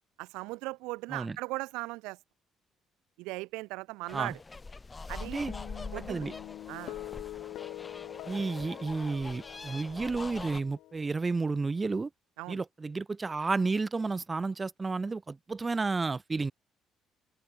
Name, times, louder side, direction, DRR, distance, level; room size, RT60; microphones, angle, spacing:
voice 1, 0.2-2.2 3.2-4.4 5.1-5.5 5.9-6.2 6.7-7.0 12.4-12.6, right 23 dB, 75° right, 0.7 m, -38 dB
sound 1, 4.1-10.6, left 3 dB, 25° left, 1.2 m, -44 dB
Guitar, 5.5-12.0, left 15 dB, 70° left, 2.1 m, -45 dB
voice 2, 8.2-12.1 12.5-16.5, right 3 dB, 30° right, 0.4 m, -31 dB
open air
hypercardioid pair, 55°, 0 cm